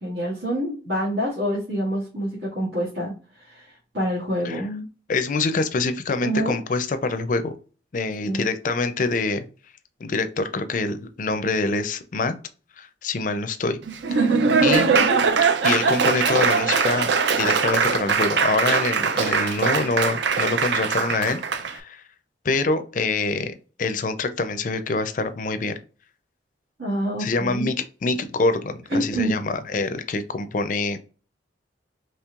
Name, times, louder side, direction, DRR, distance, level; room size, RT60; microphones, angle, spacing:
voice 1, 0.0-4.9 6.2-6.6 8.2-8.5 14.1-15.1 26.8-27.7 28.9-29.3, right 1 dB, 85° right, -9 dB, 1.9 m, -27 dB
voice 2, 5.1-7.5 7.9-9.4 10.0-12.3 12.8-13.8 14.1-14.3 14.6-14.9 15.6-17.1 17.4-22.0 22.4-23.5 23.8-25.7 27.2-27.7 28.0-31.0, left 3 dB, 45° left, 10 dB, 0.4 m, -25 dB
Laughter / Applause, 13.9-21.7, right 5 dB, 70° right, 0.5 m, -21 dB
4.5 x 3.1 x 2.4 m, 0.37 s
head